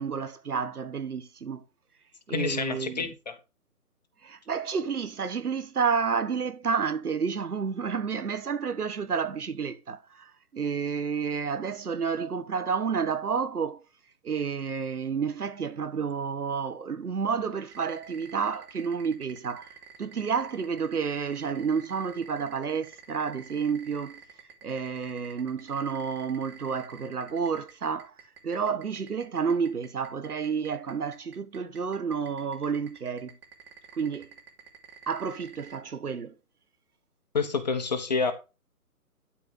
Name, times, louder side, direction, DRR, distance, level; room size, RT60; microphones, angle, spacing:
voice 1, 0.0-1.6 2.3-3.1 4.2-13.8 14.2-19.7 20.0-24.2 24.6-28.1 28.4-33.4 34.0-34.3 35.1-36.3, right 6 dB, 70° right, 1.7 m, -30 dB
voice 2, 2.3-3.4 37.3-38.3, left 4 dB, 30° left, 0.9 m, -28 dB
sound 1, 17.7-35.8, right 7 dB, 40° right, 2.7 m, -48 dB
12.0 x 4.6 x 6.0 m
hypercardioid pair, 160°, 46 cm